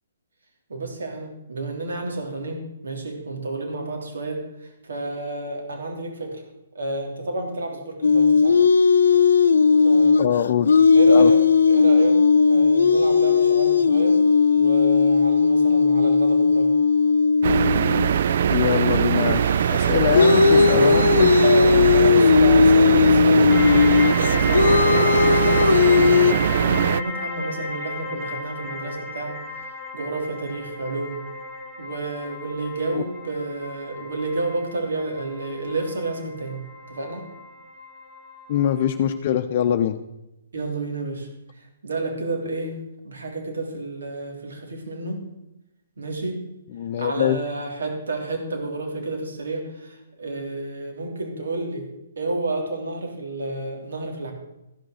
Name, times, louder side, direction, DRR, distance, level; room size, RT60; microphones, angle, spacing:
voice 1, 0.7-6.4 6.7-8.5 9.8-10.3 10.9-11.4 11.7-12.2 12.5-14.2 14.5-16.7 19.9-20.3 21.4-23.6 23.9-29.3 29.9-31.2 31.8-36.6 36.9-37.2 40.5-41.3 41.6-42.8 43.0-45.2 46.0-46.4 47.0-51.9 52.2-54.3, right 2 dB, 80° right, 2 dB, 3.0 m, -30 dB
sound 1, 8.0-18.2 19.7-26.3, left 5 dB, 85° left, 0.6 m, -17 dB
voice 2, 10.2-10.7 11.1-11.3 18.5-21.3 32.9-33.0 38.5-40.0 46.7-47.4, left 10 dB, 45° left, 7 dB, 0.6 m, -23 dB
sound 2, 17.4-27.0, right 8 dB, 55° right, 0.4 m, -21 dB
sound 3, 23.5-39.2, left 3 dB, 5° left, 2.2 m, -34 dB
14.0 x 6.1 x 6.4 m, 0.94 s
hypercardioid pair, 155°, 0 cm